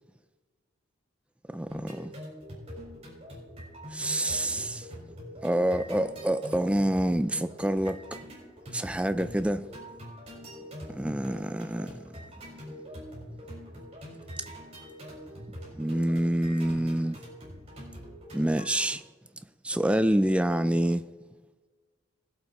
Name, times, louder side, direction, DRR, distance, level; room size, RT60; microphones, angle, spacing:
voice 1, 1.5-2.1 3.9-4.9 5.4-8.2 8.7-9.7 10.9-12.0 15.8-17.2 18.3-19.0 19.6-21.0, right 1 dB, 5° right, 0.3 m, -27 dB
sound 1, 1.7-18.8, equal, 30° right, 4.5 m, -44 dB
20.0 x 7.8 x 4.2 m
head